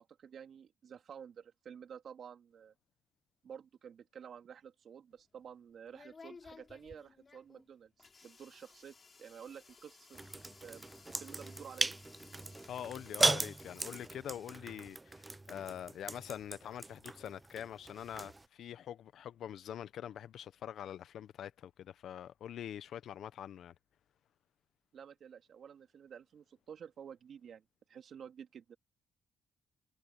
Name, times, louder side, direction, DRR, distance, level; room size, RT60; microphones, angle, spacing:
voice 1, 0.0-2.7 3.4-10.2 10.6-11.9 24.9-28.8, right 8 dB, 60° right, 2.9 m, -51 dB
sound 1, 5.1-14.1, left 4 dB, 35° left, 6.6 m, -58 dB
sound 2, 10.1-18.5, right 2 dB, 15° right, 0.4 m, -38 dB
voice 2, 12.7-23.7, left 10 dB, 70° left, 1.0 m, -45 dB
cardioid pair, 90°, 0 cm